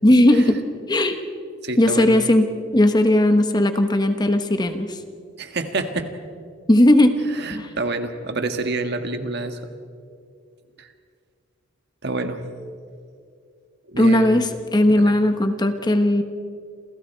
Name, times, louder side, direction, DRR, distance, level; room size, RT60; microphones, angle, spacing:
voice 1, 0.0-0.6 0.9-1.2 1.8-2.5 2.7-5.0 6.7-7.1 7.5-7.7 14.0-16.2, left 1 dB, 20° left, 7 dB, 1.2 m, -17 dB
voice 2, 1.6-2.5 5.4-6.1 7.4-9.6 10.8-10.9 12.0-12.4 13.9-14.4 15.0-15.1, right 3 dB, 55° right, 7 dB, 1.8 m, -28 dB
29.0 x 28.0 x 4.5 m, 2.3 s
head